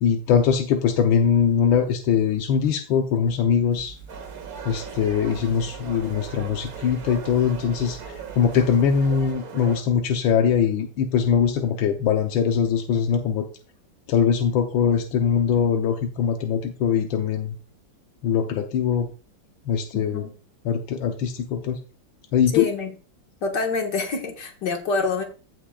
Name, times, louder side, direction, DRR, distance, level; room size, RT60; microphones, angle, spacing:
voice 1, 0.0-4.0 4.6-13.5 14.1-17.6 18.2-19.1 19.6-20.3 20.6-21.8 22.3-22.7, left 7 dB, 85° left, 4 dB, 1.6 m, -22 dB
sound 1, 3.7-9.3, right 7 dB, 10° left, 2.3 m, -44 dB
sound 2, 4.1-9.8, right 6 dB, 55° right, 1.5 m, -39 dB
voice 2, 19.9-20.3 22.5-22.9 23.4-25.2, left 4 dB, 65° left, 3 dB, 2.2 m, -26 dB
15.5 x 6.2 x 2.3 m, 0.35 s
omnidirectional pair, 2.0 m